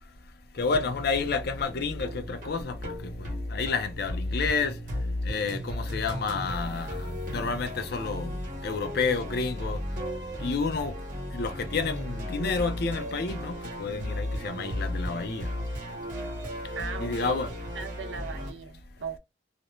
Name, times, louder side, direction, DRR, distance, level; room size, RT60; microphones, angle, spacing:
voice 1, 0.6-4.7 5.2-8.4 8.6-9.8 10.4-10.9 11.3-15.5 17.0-17.5, left 4 dB, 60° left, 0.5 m, -30 dB
sound 1, 0.6-18.5, left 1 dB, 50° right, 1.0 m, -35 dB
voice 2, 16.8-19.2, right 6 dB, 85° right, 0.4 m, -39 dB
2.5 x 2.1 x 2.9 m
head